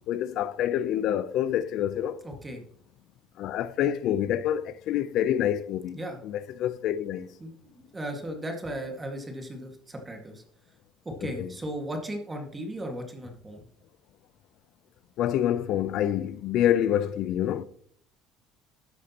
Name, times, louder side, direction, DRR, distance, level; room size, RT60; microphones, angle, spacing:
voice 1, 0.1-2.2 3.4-7.3 11.2-11.5 15.2-17.6, left 11 dB, 65° left, 0.6 m, -27 dB
voice 2, 2.2-2.6 5.9-6.2 7.4-10.4 11.1-13.6, right 1 dB, 20° right, 1.9 m, -36 dB
12.5 x 8.4 x 3.0 m
cardioid pair, 105°, 0 cm